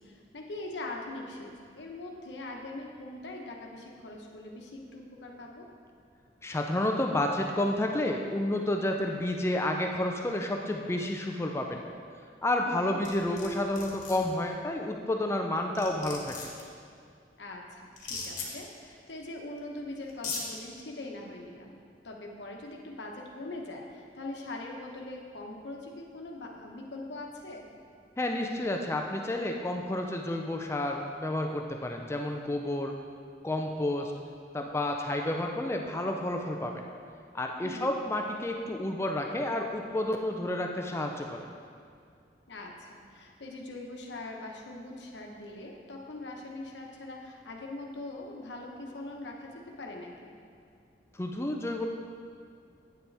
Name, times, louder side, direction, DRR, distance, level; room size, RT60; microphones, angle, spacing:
voice 1, 0.0-5.7 12.7-13.0 17.4-21.8 22.0-27.6 37.6-37.9 42.5-50.4, left 2 dB, 80° left, 0 dB, 0.9 m, -42 dB
voice 2, 6.4-11.8 12.4-16.4 28.2-32.9 33.4-34.1 34.5-36.8 37.3-41.5 51.2-51.8, left 1 dB, 15° left, 2 dB, 0.4 m, -30 dB
sound 1, 13.0-13.5 13.7-14.2 15.4-15.5 15.7-16.6 18.0-18.5 19.6-19.7 20.1-20.4, left 5 dB, 45° left, 1.3 m, -37 dB
9.1 x 7.0 x 3.3 m, 2.2 s
head